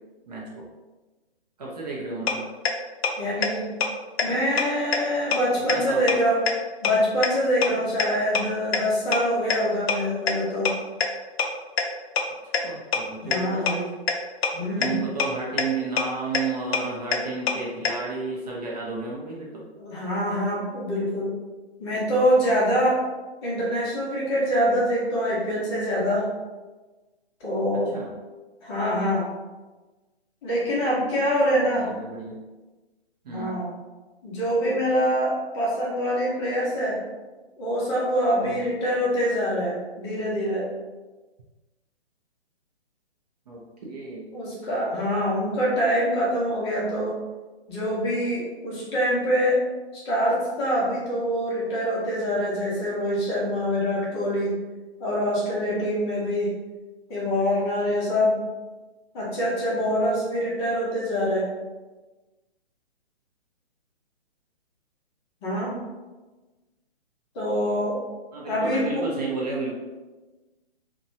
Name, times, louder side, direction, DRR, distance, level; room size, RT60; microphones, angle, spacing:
voice 1, 0.3-0.6 1.6-2.5 5.7-6.2 12.4-13.9 14.6-19.6 27.7-28.1 31.8-32.4 33.2-33.5 38.4-38.7 43.5-44.4 68.3-69.7, right 3 dB, 40° right, -4 dB, 0.5 m, -33 dB
sound 1, 2.3-2.4 2.7-2.8 3.0-3.1 3.4-3.5 3.8-3.9 4.2-4.3 4.6-4.7 4.9-5.0 5.3-5.4 5.7-5.8 6.1-6.2 6.5-6.6 6.8-6.9 7.2-7.3 7.6-7.7 8.0-8.1 8.4-8.5 8.7-8.8 9.1-9.2 9.5-9.6 9.9-10.0 10.3-10.4 10.7-10.8 11.0-11.1 11.4-11.5 11.8-11.9 12.2-12.3 12.5-12.6 12.9-13.0 13.3-13.4 13.7-13.8 14.1-14.2 14.4-14.5 14.8-14.9 15.2-15.3 15.6-15.7 16.0-16.1 16.3-16.4 16.7-16.8 17.1-17.2 17.5-17.6 17.9-18.0, left 7 dB, 70° left, 0.5 m, -22 dB
voice 2, 3.2-3.7 4.2-6.4 6.8-10.7 13.2-13.8 14.5-15.0 19.8-21.3 21.8-23.0 23.4-26.2 27.4-28.0 28.6-29.3 30.4-31.9 33.3-33.7 34.2-37.0 37.6-40.7 44.3-47.1 47.7-49.6 50.0-54.5 55.0-56.5 57.1-58.4 59.1-61.5 65.4-65.7 67.3-68.0 68.5-69.1, equal, 25° left, -6 dB, 0.8 m, -25 dB
2.8 x 2.2 x 2.6 m, 1.2 s
hypercardioid pair, 145°, 32 cm